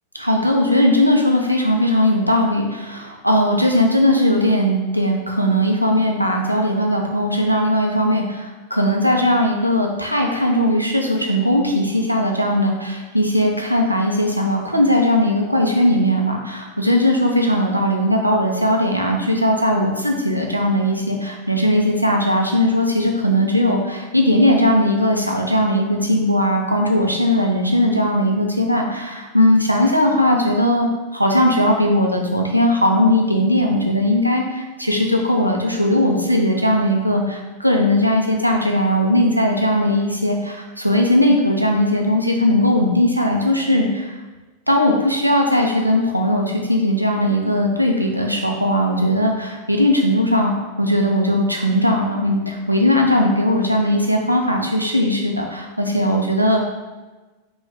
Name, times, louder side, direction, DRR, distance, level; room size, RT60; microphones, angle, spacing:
voice 1, 0.1-44.1 44.7-50.5 50.8-56.6, left 1 dB, 90° right, 1 dB, 0.5 m, -18 dB
3.5 x 2.2 x 3.5 m, 1.2 s
figure-of-eight pair, 90°, 0 cm